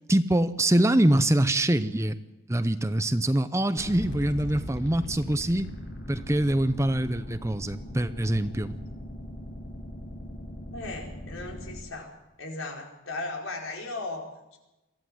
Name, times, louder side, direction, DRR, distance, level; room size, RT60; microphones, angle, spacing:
voice 1, 0.1-2.2 2.5-5.7 6.1-8.8, right 1 dB, 15° right, 12 dB, 0.6 m, -24 dB
sound 1, 3.8-11.8, equal, 60° left, 7.1 m, -39 dB
voice 2, 10.7-12.1 12.4-14.6, left 2 dB, 85° left, 0 dB, 4.8 m, -37 dB
22.5 x 15.0 x 7.8 m, 1.0 s
head